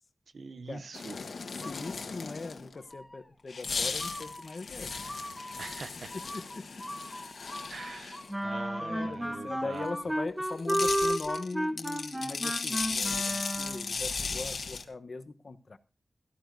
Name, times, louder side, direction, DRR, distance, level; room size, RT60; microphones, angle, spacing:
voice 1, 0.3-1.2 5.6-6.1 7.7-9.9, right 4 dB, 80° right, 0.7 m, -43 dB
sound 1, 0.9-2.7 3.5-8.3 10.4-14.8, left 4 dB, 85° left, 1.4 m, -36 dB
voice 2, 1.6-5.0 6.3-6.8 8.8-15.8, left 3 dB, 60° left, 1.0 m, -40 dB
sound 2, 1.6-2.4 2.7-3.3 4.0-10.3, left 1 dB, 15° left, 1.4 m, -44 dB
sound 3, 8.3-14.0, equal, 10° right, 1.1 m, -32 dB
17.0 x 13.5 x 2.6 m
cardioid pair, 60°, 0 cm